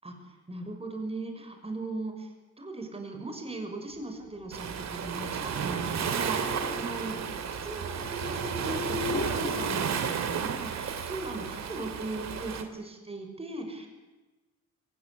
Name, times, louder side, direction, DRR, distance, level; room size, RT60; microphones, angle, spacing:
voice 1, 0.0-2.3 2.6-13.9, right 2 dB, 20° right, 5 dB, 6.1 m, -38 dB
sound 1, 4.2-10.7, left 5 dB, 30° left, 3.1 m, -40 dB
Waves surf, 4.5-12.6, right 7 dB, 60° right, 2.7 m, -32 dB
23.5 x 16.5 x 9.9 m, 1.2 s
cardioid pair, 90°, 30 cm